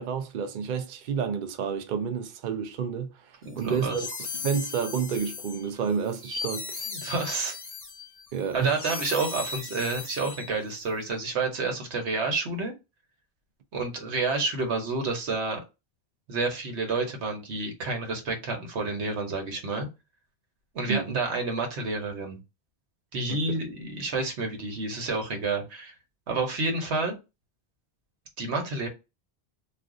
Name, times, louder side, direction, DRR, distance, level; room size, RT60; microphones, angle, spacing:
voice 1, 0.0-4.1 4.4-6.7 8.3-8.8 20.9-21.2 23.3-23.6, right 7 dB, 60° right, 0.6 m, -30 dB
voice 2, 3.4-4.0 6.9-7.5 8.5-12.7 13.7-15.6 16.3-19.9 20.7-22.4 23.1-25.9 26.3-27.1 28.4-28.9, right 3 dB, 90° right, 1.2 m, -29 dB
sound 1, 3.6-10.8, left 4 dB, 30° left, 0.5 m, -38 dB
2.5 x 2.4 x 3.6 m
omnidirectional pair, 1.1 m